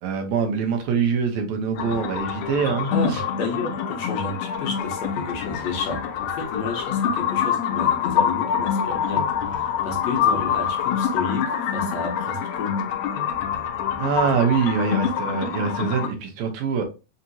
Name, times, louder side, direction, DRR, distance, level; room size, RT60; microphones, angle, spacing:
voice 1, 0.0-3.2 14.0-16.8, right 6 dB, 75° right, 2.0 m, -24 dB
sound 1, 1.8-16.1, left 8 dB, 85° left, 2.1 m, -25 dB
voice 2, 2.9-12.8, left 3 dB, 70° left, 2.2 m, -31 dB
5.3 x 2.9 x 2.6 m
omnidirectional pair, 3.3 m